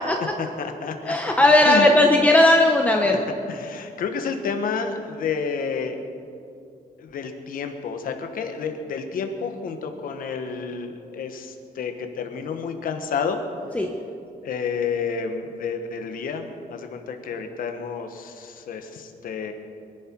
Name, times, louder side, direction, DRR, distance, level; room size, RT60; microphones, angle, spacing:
voice 1, 0.4-1.3 1.6-1.9 3.0-3.2 3.5-6.0 7.0-13.4 14.4-19.5, left 6 dB, 65° left, 5 dB, 1.4 m, -30 dB
voice 2, 1.1-3.2 13.7-13.9, left 1 dB, 10° left, 1 dB, 0.9 m, -17 dB
23.5 x 11.5 x 4.6 m, 2.5 s
wide cardioid pair, 160°, 16 cm